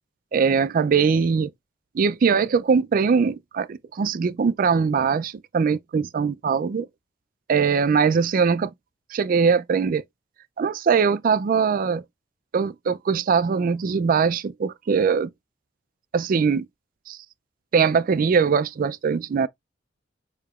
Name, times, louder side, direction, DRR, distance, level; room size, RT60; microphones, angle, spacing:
voice 1, 0.3-1.5 1.9-6.9 7.5-8.7 9.1-10.0 10.6-12.0 12.5-15.3 16.1-16.7 17.1-17.2 17.7-19.5, right 5 dB, 45° right, 0.3 m, -21 dB
6.5 x 2.8 x 2.4 m
head